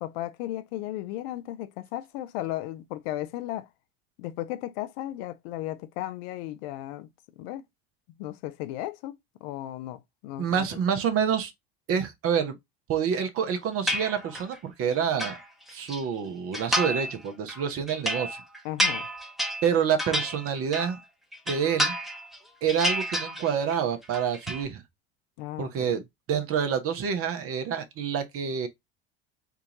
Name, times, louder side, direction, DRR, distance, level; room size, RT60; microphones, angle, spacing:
voice 1, 0.0-3.7 4.2-7.1 7.4-7.6 8.2-10.8 18.6-19.1 25.4-25.9, left 14 dB, 65° left, 0.5 m, -35 dB
voice 2, 10.4-11.5 11.9-12.5 12.9-15.4 15.7-18.4 19.6-21.0 21.5-22.0 22.6-24.8 25.6-26.0 26.3-28.7, right 7 dB, 45° right, 1.0 m, -27 dB
sound 1, 13.9-14.6 14.9-16.0 16.5-17.2 17.5-21.0 21.3-22.4 22.7-23.8 24.0-24.6, equal, ahead, 0.9 m, -30 dB
3.5 x 2.5 x 2.9 m
hypercardioid pair, 70°, 31 cm